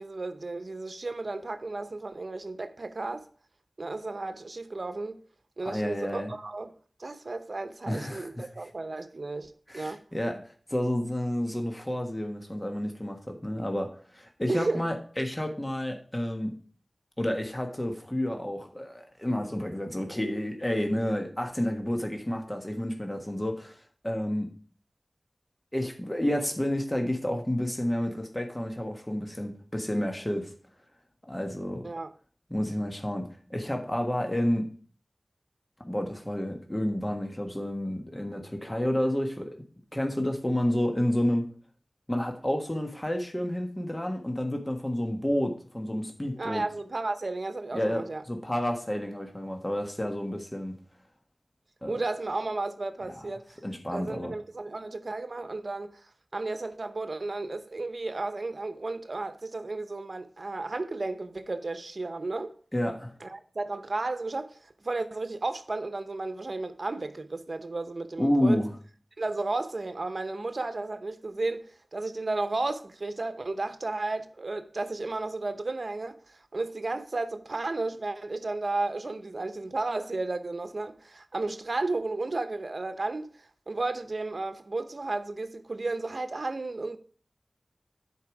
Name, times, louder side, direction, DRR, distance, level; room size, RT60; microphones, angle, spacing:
voice 1, 0.0-3.2 3.8-5.2 5.6-6.7 7.0-10.0 14.5-14.9 31.8-32.1 46.3-48.2 51.9-53.6 53.9-62.5 63.2-68.6 69.2-87.0, right 2 dB, 65° right, 0.8 m, -33 dB
voice 2, 5.6-6.3 7.9-8.5 9.7-16.6 17.2-24.5 25.7-30.5 31.3-31.9 32.5-34.7 35.9-39.6 39.9-41.5 42.1-46.6 47.7-50.7 51.8-51.9 53.0-53.1 53.6-54.3 62.7-63.1 68.2-68.7, left 1 dB, 20° left, 1.3 m, -30 dB
10.5 x 4.7 x 4.8 m
wide cardioid pair, 60°, 0 cm